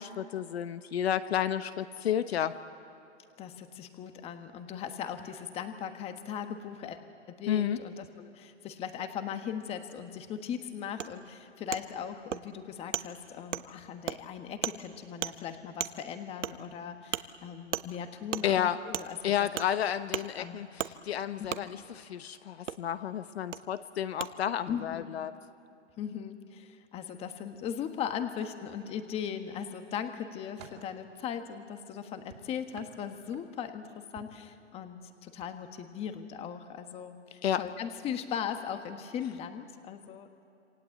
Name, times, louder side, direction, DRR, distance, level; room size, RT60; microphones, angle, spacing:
voice 1, 0.0-2.5 7.5-7.8 18.4-18.8 19.2-25.3 37.4-37.6, left 10 dB, 55° left, 12 dB, 1.1 m, -31 dB
voice 2, 3.4-7.0 7.3-19.3 20.4-20.6 21.4-21.5 24.7-25.1 26.0-40.3, left 8 dB, 15° left, 8 dB, 1.4 m, -38 dB
Wood, 11.0-11.1 11.7-11.8 12.3-12.4 12.9-13.0 13.5-13.6 14.1-14.2 14.6-14.8 15.2-15.3 15.8-15.9 16.4-16.5 17.1-17.2 17.7-17.9 18.3-18.4 18.9-19.1 19.6-19.7 20.1-20.2 20.8-20.9 21.5-21.6 22.7-22.8 23.5-23.6 24.2-24.3, right 9 dB, 80° right, 1.3 m, -33 dB
sound 1, 28.8-29.6 30.1-30.9 32.3-33.7 34.2-34.5 35.3-35.5 35.9-36.1, right 8 dB, 35° right, 3.0 m, -54 dB
27.5 x 26.0 x 8.5 m, 2.6 s
hypercardioid pair, 150°, 36 cm